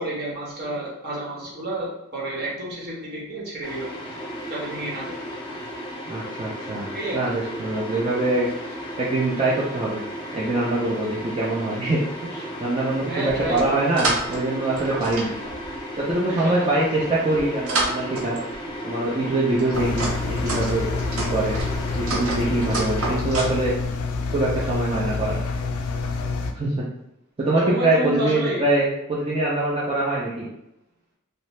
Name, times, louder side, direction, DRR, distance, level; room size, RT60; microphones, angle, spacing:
voice 1, 0.0-4.1 4.5-5.2 6.9-7.2 13.1-13.8 16.4-16.5 27.6-28.7, right 1 dB, 50° right, -5 dB, 1.0 m, -30 dB
sound 1, 3.6-23.2, equal, 20° left, 0.6 m, -35 dB
voice 2, 6.1-8.5 9.0-10.0 10.3-12.0 12.3-15.3 16.0-18.3 18.8-20.9 21.2-21.6 21.9-23.7 24.3-25.4 26.5-26.8 27.4-30.5, right 2 dB, 25° right, -7 dB, 0.5 m, -24 dB
sound 2, 13.3-14.4 14.8-16.1 16.8-18.6 19.2-23.6, right 2 dB, 80° right, 0.6 m, -30 dB
Engine, 19.7-26.5, left 4 dB, 80° left, 0.4 m, -27 dB
2.7 x 2.0 x 3.1 m, 0.87 s
head